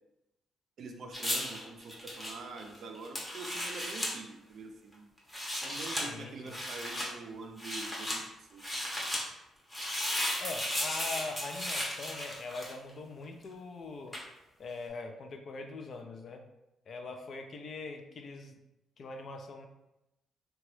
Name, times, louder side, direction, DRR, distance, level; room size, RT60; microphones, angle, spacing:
voice 1, 0.8-5.1 5.6-9.0, right 3 dB, 55° right, 3 dB, 0.4 m, -45 dB
sound 1, 1.1-4.1 5.2-6.1 6.5-7.1 7.6-8.2 8.6-9.2 9.7-12.9 14.1-14.3, left 1 dB, 10° left, 0.7 m, -35 dB
voice 2, 6.0-6.6 10.4-14.2 14.6-16.4 16.9-18.6 19.0-19.7, left 3 dB, 45° left, 5 dB, 0.3 m, -42 dB
2.9 x 2.2 x 3.1 m, 0.92 s
cardioid pair, 140°, 0 cm